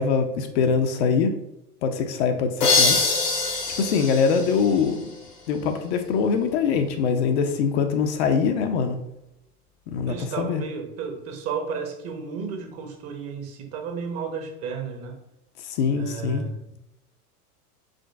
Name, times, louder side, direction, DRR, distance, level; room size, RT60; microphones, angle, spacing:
voice 1, 0.0-1.3 1.8-3.0 3.8-5.0 5.5-9.0 9.9-10.6 15.6-16.5, left 6 dB, 45° left, 6 dB, 0.5 m, -23 dB
sound 1, 2.6-5.3, left 3 dB, 80° left, 1.3 m, -24 dB
voice 2, 10.1-15.2 15.9-16.8, right 5 dB, 30° right, 4 dB, 0.8 m, -33 dB
5.0 x 3.7 x 2.3 m, 0.87 s
hypercardioid pair, 95°, 46 cm